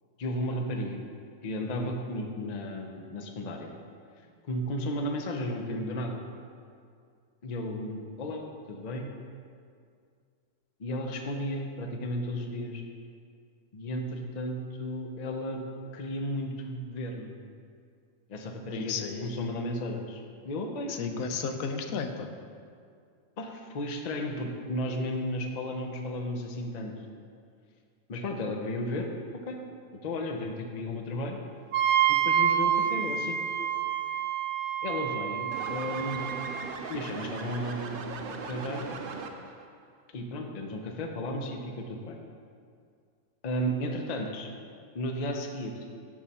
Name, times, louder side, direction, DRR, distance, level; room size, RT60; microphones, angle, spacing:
voice 1, 0.2-1.0 1.4-3.7 4.5-6.2 7.4-9.1 10.8-12.8 13.7-15.6 15.9-17.3 18.3-18.9 19.2-21.3 23.4-26.9 28.1-29.1 29.4-29.6 29.9-31.4 32.1-33.4 34.8-36.2 36.9-38.0 38.3-38.9 40.1-42.2 43.4-44.5 44.9-45.7, left 1 dB, 40° left, 3 dB, 0.7 m, -34 dB
voice 2, 18.7-19.5 20.9-22.3, left 5 dB, 80° left, 6 dB, 1.0 m, -33 dB
Wind instrument woodwind instrument, 31.7-36.7, right 10 dB, 90° right, 1.1 m, -28 dB
sound 1, 35.5-39.7, right 4 dB, 55° right, 0.6 m, -38 dB
11.0 x 4.8 x 4.2 m, 2.2 s
omnidirectional pair, 1.5 m